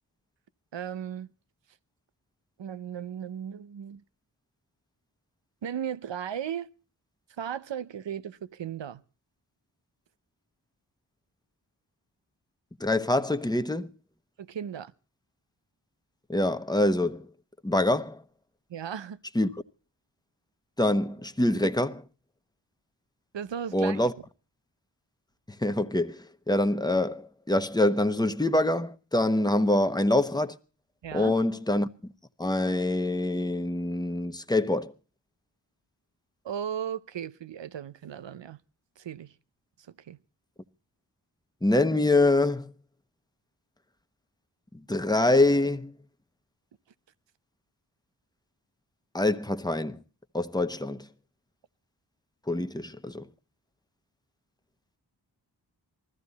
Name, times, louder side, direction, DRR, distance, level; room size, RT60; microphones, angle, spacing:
voice 1, 0.7-1.3 2.6-4.0 5.6-6.7 7.4-9.0 14.4-14.9 18.7-19.2 23.3-24.1 31.0-31.4 36.4-38.6 39.0-39.4 40.0-40.2, right 9 dB, 85° right, 0.7 m, -36 dB
voice 2, 12.8-13.9 16.3-17.3 17.6-18.2 19.3-19.5 20.8-22.0 23.7-24.1 25.6-30.6 31.1-31.9 32.4-34.9 41.6-42.7 44.9-45.9 49.1-50.0 50.3-51.1 52.5-53.3, left 1 dB, 10° left, 1.0 m, -25 dB
20.0 x 14.5 x 4.1 m
wide cardioid pair, 50°, 43 cm